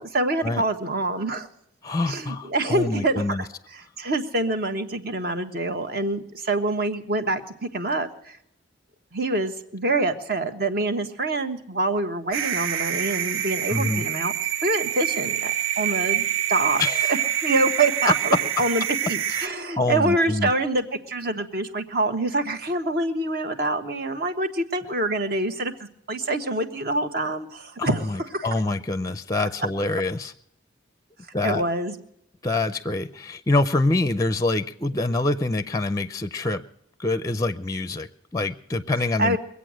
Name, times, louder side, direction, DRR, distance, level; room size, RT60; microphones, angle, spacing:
voice 1, 0.0-1.5 2.1-8.4 9.1-14.3 14.6-16.8 17.1-25.7 26.1-28.6 31.4-32.0 39.2-39.4, right 2 dB, 50° right, 7 dB, 1.3 m, -26 dB
voice 2, 1.8-3.4 13.7-14.1 16.8-17.1 19.3-20.5 27.8-30.3 31.3-31.6 32.4-36.6 37.0-39.4, left 2 dB, 15° left, 13 dB, 0.5 m, -26 dB
sound 1, 12.3-19.5, right 11 dB, 80° right, 0.6 m, -26 dB
23.0 x 8.4 x 6.3 m, 0.76 s
head